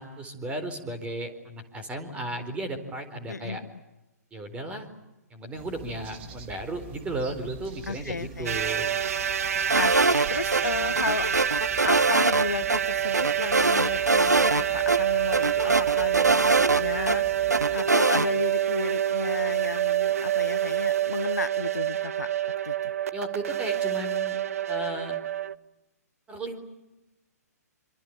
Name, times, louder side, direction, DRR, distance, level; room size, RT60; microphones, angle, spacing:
voice 1, 0.0-3.6 4.3-4.9 5.3-8.9 23.1-24.4 24.7-25.2 26.3-26.6, right 1 dB, 15° right, 4.2 m, -35 dB
voice 2, 3.3-3.7 7.9-8.6 9.7-11.3 11.8-22.9, left 4 dB, 80° left, 1.0 m, -34 dB
sound 1, 5.6-17.8, right 5 dB, 40° right, 2.7 m, -45 dB
sound 2, 8.5-25.5, right 10 dB, 60° right, 1.0 m, -27 dB
sound 3, 9.7-10.6 11.0-12.4 12.7-12.8 13.1-14.6 14.9-15.0 15.3-17.2 17.5-18.3, right 3 dB, 90° right, 1.2 m, -23 dB
26.5 x 25.5 x 8.8 m
figure-of-eight pair, 125°, 9 cm